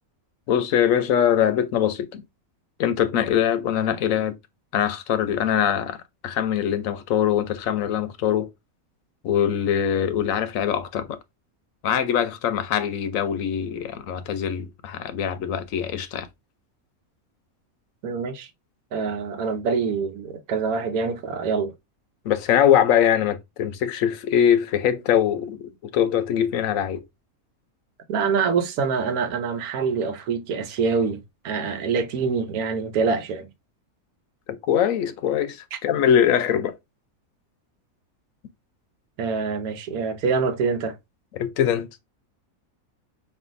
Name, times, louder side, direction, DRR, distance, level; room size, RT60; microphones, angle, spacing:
voice 1, 0.5-2.2 2.8-4.3 4.7-6.0 6.2-8.5 9.2-11.2 11.8-16.3 22.2-27.0 34.7-36.7 41.3-41.9, left 9 dB, 70° left, 1.0 m, -22 dB
voice 2, 18.0-18.5 18.9-21.7 28.1-31.2 31.4-33.5 35.7-35.8 39.2-40.9, right 5 dB, 90° right, 1.2 m, -25 dB
5.5 x 2.6 x 2.5 m
omnidirectional pair, 1.5 m